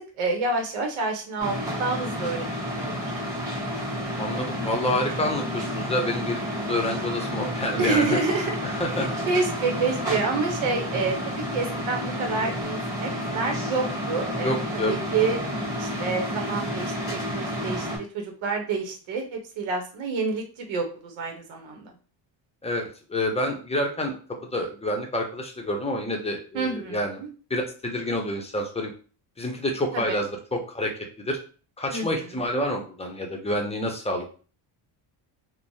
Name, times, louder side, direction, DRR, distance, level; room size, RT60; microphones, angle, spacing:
voice 1, 0.2-2.5 2.7-3.1 7.8-8.6 8.9-15.4 15.7-21.9 26.5-27.3 29.9-30.2 31.9-32.3, right 4 dB, 80° right, 2 dB, 0.9 m, -28 dB
sound 1, 1.4-18.0, equal, 10° right, 1.2 m, -30 dB
voice 2, 4.2-8.2 8.6-9.1 14.4-14.9 22.6-24.1 24.5-27.2 27.5-28.9 29.4-30.9 31.2-31.4 31.8-34.2, left 1 dB, 15° left, 1 dB, 0.6 m, -28 dB
3.1 x 2.1 x 2.6 m, 0.38 s
cardioid pair, 115°, 47 cm